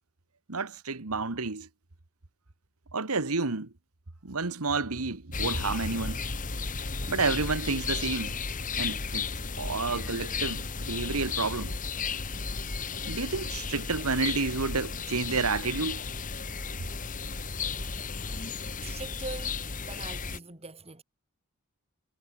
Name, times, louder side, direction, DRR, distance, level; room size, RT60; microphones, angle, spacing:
voice 1, 0.5-1.7 2.9-3.7 4.2-6.2 7.1-8.3 8.8-9.3 9.6-11.7 13.0-16.0, right 4 dB, 80° right, 1.6 m, -30 dB
sound 1, 5.3-20.4, left 5 dB, 35° left, 1.6 m, -34 dB
voice 2, 18.8-21.0, right 3 dB, 30° right, 3.1 m, -42 dB
head